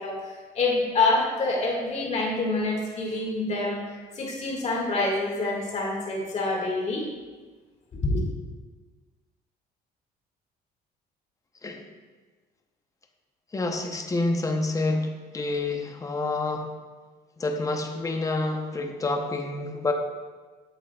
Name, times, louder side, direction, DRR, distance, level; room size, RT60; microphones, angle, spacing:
voice 1, 0.0-3.8 4.1-7.1 8.0-8.2, left 2 dB, 40° left, -1 dB, 1.9 m, -26 dB
voice 2, 13.5-16.7 17.4-19.9, left 2 dB, 20° left, 4 dB, 0.8 m, -28 dB
8.7 x 7.4 x 2.3 m, 1.4 s
cardioid pair, 110°, 17 cm